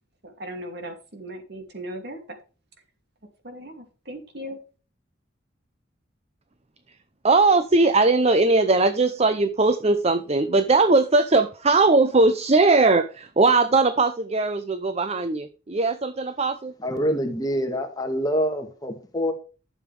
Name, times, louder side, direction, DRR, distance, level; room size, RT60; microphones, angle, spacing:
voice 1, 0.2-2.4 3.4-4.6, right 1 dB, 60° right, 5 dB, 2.6 m, -37 dB
voice 2, 7.2-16.7, right 3 dB, 35° right, 11 dB, 0.7 m, -20 dB
voice 3, 16.8-19.3, equal, 20° left, 4 dB, 1.9 m, -26 dB
12.0 x 7.3 x 3.4 m, 0.35 s
head